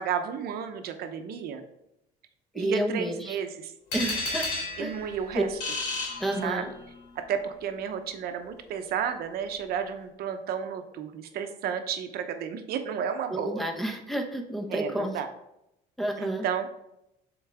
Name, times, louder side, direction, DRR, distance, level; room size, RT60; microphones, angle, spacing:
voice 1, 0.0-1.6 2.5-3.7 4.8-5.5 6.4-6.7 7.1-13.6 14.7-15.3 16.2-16.7, right 7 dB, 65° right, 8 dB, 0.8 m, -32 dB
voice 2, 2.5-3.4 3.9-4.5 4.8-4.9 5.3-5.4 6.2-6.7 13.3-15.1 16.0-16.5, right 1 dB, ahead, 4 dB, 0.9 m, -30 dB
sound 1, 3.9-7.0, left 3 dB, 85° left, 2.4 m, -33 dB
7.1 x 3.9 x 3.4 m, 0.84 s
cardioid pair, 95°, 17 cm